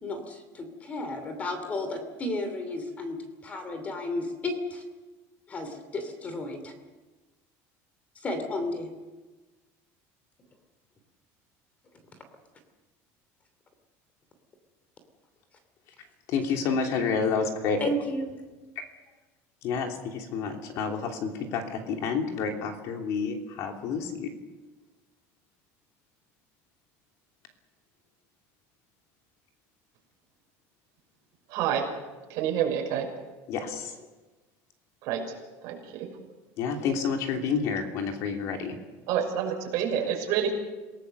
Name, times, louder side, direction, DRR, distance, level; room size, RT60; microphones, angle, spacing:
voice 1, 0.0-4.8 5.5-6.7 8.2-8.9 17.8-18.3, left 1 dB, 20° left, 8 dB, 2.8 m, -33 dB
voice 2, 16.3-17.9 19.6-24.3 33.5-33.9 36.6-38.7, left 5 dB, 50° left, 3 dB, 3.1 m, -29 dB
voice 3, 31.5-31.8 32.3-33.1 35.0-35.2 35.6-36.1 39.1-40.5, right 9 dB, 55° right, 2 dB, 6.0 m, -28 dB
28.0 x 18.0 x 6.8 m, 1.2 s
cardioid pair, 170°, 7 cm